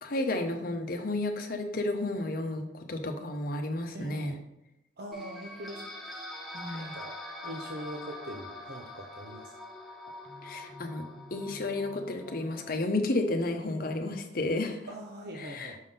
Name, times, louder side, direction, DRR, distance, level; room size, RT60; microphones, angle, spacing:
voice 1, 0.0-4.4 6.4-6.9 10.4-11.1 11.3-14.8 15.4-15.7, left 2 dB, 55° left, 4 dB, 0.9 m, -32 dB
voice 2, 3.9-4.4 5.0-6.2 6.7-7.1 7.4-9.5 14.9-15.8, right 1 dB, 60° right, 0 dB, 0.7 m, -42 dB
sound 1, 5.1-12.8, left 1 dB, ahead, 0.9 m, -44 dB
6.3 x 3.6 x 5.6 m, 0.85 s
head